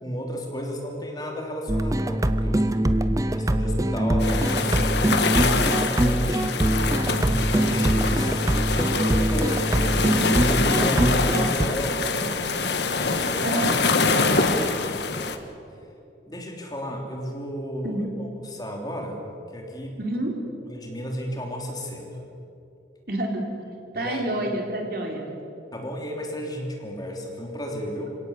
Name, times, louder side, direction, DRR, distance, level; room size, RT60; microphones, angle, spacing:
voice 1, 0.0-5.1 5.7-12.5 13.0-13.6 14.1-15.0 16.3-19.2 19.5-20.0 20.7-22.2 23.9-24.2 25.7-28.2, equal, 20° left, 1 dB, 3.2 m, -33 dB
sound 1, 1.7-11.7, right 1 dB, 20° right, 0.6 m, -23 dB
sound 2, 4.2-15.4, left 4 dB, 70° left, 1.6 m, -25 dB
voice 2, 20.0-20.3 23.1-23.5 23.9-25.3, right 1 dB, 55° right, 1 dB, 3.8 m, -28 dB
26.0 x 17.5 x 8.2 m, 2.7 s
head